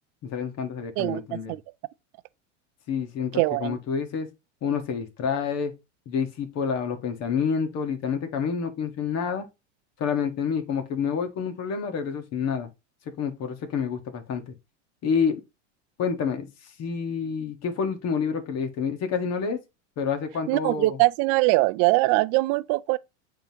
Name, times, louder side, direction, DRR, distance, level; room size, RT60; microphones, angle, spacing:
voice 1, 0.2-1.6 2.9-4.3 4.6-5.7 6.0-9.5 10.0-12.7 13.0-14.5 15.0-15.4 16.0-16.5 16.8-19.6 20.0-21.0, left 6 dB, 45° left, 1.6 m, -28 dB
voice 2, 1.0-1.6 3.3-3.8 20.5-23.0, right 22 dB, 50° right, 0.5 m, -22 dB
8.7 x 3.9 x 2.9 m
hypercardioid pair, 105°, 36 cm